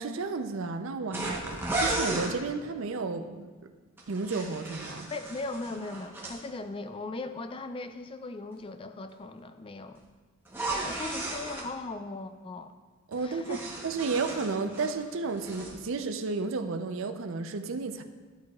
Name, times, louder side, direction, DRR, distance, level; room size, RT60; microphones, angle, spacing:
voice 1, 0.0-3.5 4.1-5.1 13.1-18.0, right 4 dB, 70° right, 7 dB, 0.5 m, -32 dB
sound 1, 1.1-2.3 4.0-6.4 10.5-11.7 13.1-15.0 15.3-15.7, right 2 dB, 10° right, 0.9 m, -34 dB
voice 2, 5.1-10.0 10.9-12.7 13.2-13.6, left 3 dB, 25° left, 9 dB, 0.3 m, -38 dB
12.0 x 6.5 x 2.4 m, 1.4 s
head